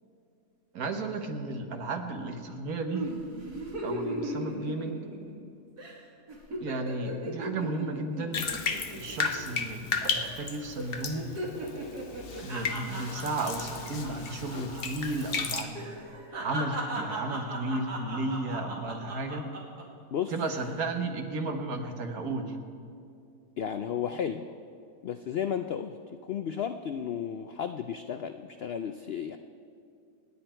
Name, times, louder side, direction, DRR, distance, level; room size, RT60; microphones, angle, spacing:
voice 1, 0.7-3.1 3.8-5.0 6.6-8.5 9.0-11.3 12.4-15.9 16.4-19.5 20.3-22.6, right 2 dB, 70° right, 5 dB, 1.7 m, -33 dB
sound 1, 2.9-5.5 5.8-6.0 6.3-9.7 10.0-10.5 10.8-14.8 15.1-15.3 15.7-19.8 20.3-20.7, right 1 dB, 85° right, 2.7 m, -37 dB
Bathtub (filling or washing), 8.3-15.6, left 5 dB, 45° left, 1.0 m, -34 dB
voice 2, 23.6-24.5 25.0-26.0 26.2-29.4, left 8 dB, 75° left, 8 dB, 0.5 m, -33 dB
27.0 x 9.7 x 4.4 m, 2.5 s
omnidirectional pair, 1.6 m